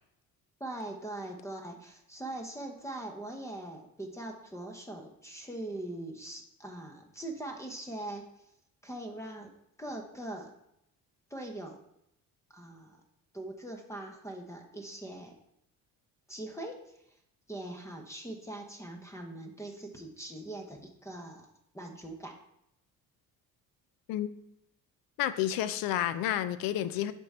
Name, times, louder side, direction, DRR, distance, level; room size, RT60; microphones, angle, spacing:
voice 1, 0.6-8.5 8.8-9.5 9.8-10.5 11.3-11.8 12.5-13.0 13.3-15.4 16.3-17.0 17.5-22.4, right 1 dB, 10° left, 3 dB, 0.7 m, -42 dB
voice 2, 25.2-27.1, left 12 dB, 90° left, 13 dB, 0.5 m, -30 dB
6.6 x 3.7 x 4.2 m, 0.78 s
cardioid pair, 125°, 33 cm